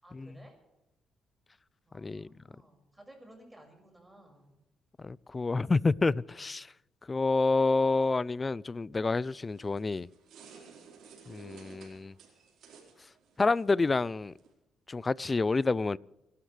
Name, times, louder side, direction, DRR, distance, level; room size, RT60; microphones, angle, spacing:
voice 1, 0.0-0.6 1.9-4.6, right 1 dB, 10° right, 5.9 m, -56 dB
voice 2, 1.9-2.3 5.0-6.7 7.1-10.1 11.3-12.1 13.4-14.3 14.9-16.0, left 3 dB, 25° left, 0.4 m, -28 dB
sound 1, 9.3-14.5, right 6 dB, 75° right, 4.6 m, -55 dB
29.0 x 12.5 x 3.4 m
cardioid pair, 90°, 0 cm